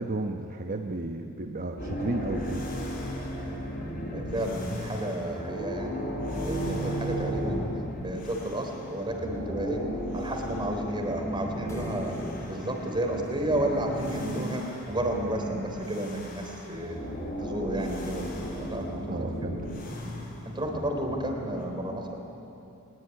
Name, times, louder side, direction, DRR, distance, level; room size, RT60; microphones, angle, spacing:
voice 1, 0.0-2.7 19.1-19.6, right 2 dB, 40° right, 4 dB, 1.1 m, -33 dB
sound 1, 1.8-8.8 9.1-21.6, equal, 40° left, 5.4 m, -35 dB
voice 2, 4.1-6.0 6.4-7.7 8.0-9.8 10.1-12.2 12.5-17.0 17.4-18.3 18.6-19.3 19.7-19.9 20.5-22.2, right 1 dB, 20° right, 2 dB, 3.6 m, -31 dB
sound 2, 11.7-15.1, equal, 15° left, 2.1 m, -42 dB
22.5 x 20.5 x 9.8 m, 2.8 s
head